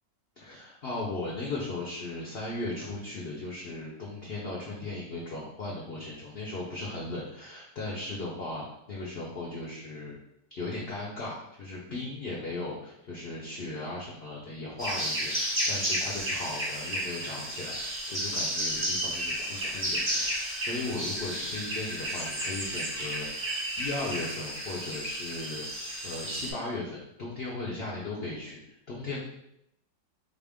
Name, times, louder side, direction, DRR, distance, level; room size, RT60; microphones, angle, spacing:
voice 1, 0.4-10.2 10.5-25.6 26.0-28.6 28.9-29.2, left 2 dB, 60° left, -4 dB, 0.6 m, -37 dB
sound 1, 14.8-26.5, equal, 30° right, 0.8 m, -32 dB
4.2 x 2.5 x 3.5 m, 0.78 s
omnidirectional pair, 1.9 m